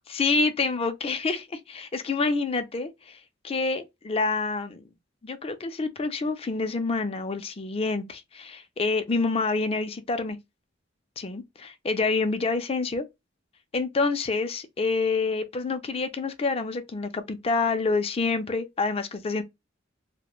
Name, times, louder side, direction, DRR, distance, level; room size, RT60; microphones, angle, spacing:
voice 1, 0.1-3.2 3.4-4.8 5.2-10.4 11.2-13.1 13.7-19.4, left 3 dB, 30° left, 0.4 m, -27 dB
3.0 x 2.1 x 2.3 m
head